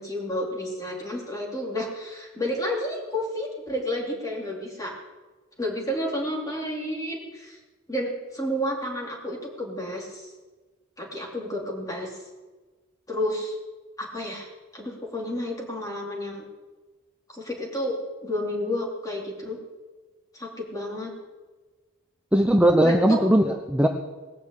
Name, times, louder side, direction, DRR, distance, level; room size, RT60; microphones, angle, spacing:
voice 1, 0.0-4.9 5.6-7.6 7.9-10.3 11.0-12.2 13.1-13.6 14.0-16.5 17.3-18.0 18.2-19.6 20.3-21.1 22.8-23.2, left 1 dB, 15° left, -2 dB, 3.3 m, -31 dB
voice 2, 22.3-23.9, right 1 dB, 5° right, 3 dB, 0.7 m, -19 dB
19.5 x 6.9 x 8.4 m, 1.3 s
head